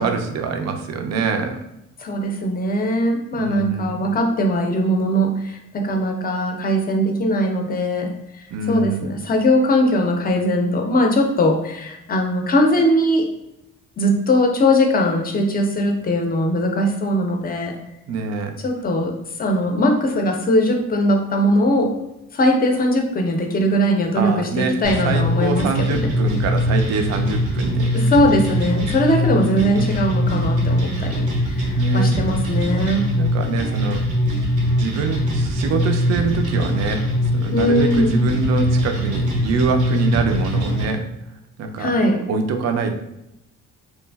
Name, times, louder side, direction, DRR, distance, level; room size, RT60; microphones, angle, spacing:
voice 1, 0.0-1.6 3.4-4.0 8.5-9.1 18.1-18.5 24.2-24.8 25.0-27.9 29.3-30.0 31.7-32.2 33.2-34.0 34.8-41.0 41.6-41.9 42.3-43.0, right 4 dB, 60° right, 5 dB, 0.5 m, -25 dB
voice 2, 2.0-8.1 8.7-13.3 14.0-17.7 18.6-21.9 22.3-26.1 27.9-33.1 37.5-38.2 41.8-42.2, equal, 30° left, 3 dB, 0.5 m, -20 dB
sound 1, 24.8-40.8, equal, 85° right, 0.7 m, -22 dB
3.0 x 2.4 x 2.2 m, 0.86 s
cardioid pair, 90°, 30 cm